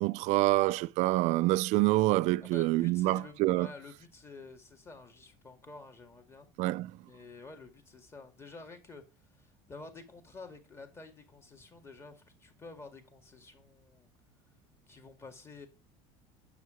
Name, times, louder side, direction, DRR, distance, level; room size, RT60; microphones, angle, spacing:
voice 1, 0.0-3.7 6.6-6.9, right 19 dB, 50° right, 0.4 m, -26 dB
voice 2, 2.4-6.5 7.1-9.0 9.3-14.1 14.9-15.7, left 3 dB, 15° left, 2.0 m, -50 dB
9.4 x 6.7 x 5.0 m
cardioid pair, 160°, 15 cm